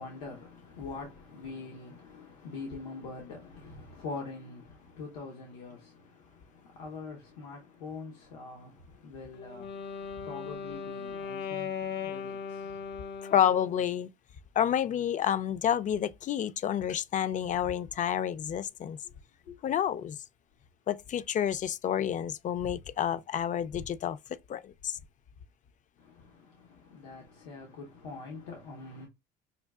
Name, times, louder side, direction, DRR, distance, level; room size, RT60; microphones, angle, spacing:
voice 1, 0.0-4.7 5.0-5.9 6.8-8.7 9.0-9.6 10.3-12.6 19.5-19.6 26.9-29.1, left 4 dB, 90° left, 0.9 m, -43 dB
Wind instrument woodwind instrument, 9.3-13.9, left 6 dB, 55° left, 0.7 m, -38 dB
voice 2, 13.2-14.1 14.6-19.0 19.6-20.2 20.9-25.0, left 9 dB, 40° left, 0.4 m, -29 dB
5.5 x 2.3 x 2.3 m
supercardioid pair, 80°, 21 cm